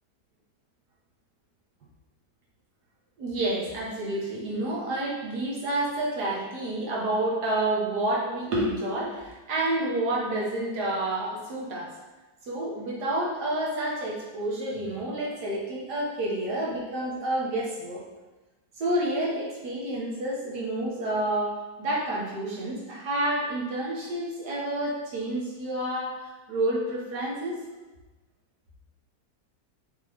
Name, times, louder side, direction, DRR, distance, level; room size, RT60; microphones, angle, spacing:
voice 1, 3.2-11.9 12.4-18.0 18.8-27.6, right 1 dB, 65° right, -4 dB, 1.9 m, -29 dB
7.2 x 3.8 x 3.5 m, 1.2 s
omnidirectional pair, 1.9 m